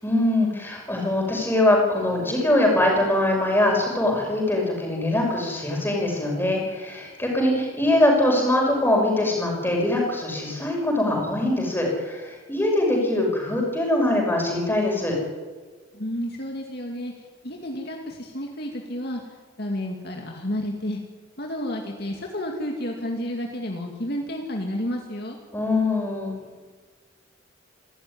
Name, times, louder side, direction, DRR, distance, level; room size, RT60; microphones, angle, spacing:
voice 1, 0.0-15.2 25.5-26.4, left 1 dB, 10° left, 0 dB, 5.9 m, -22 dB
voice 2, 15.9-19.2 19.6-21.0 21.4-25.4, left 1 dB, 50° left, 1 dB, 2.4 m, -31 dB
28.0 x 13.5 x 9.8 m, 1.4 s
head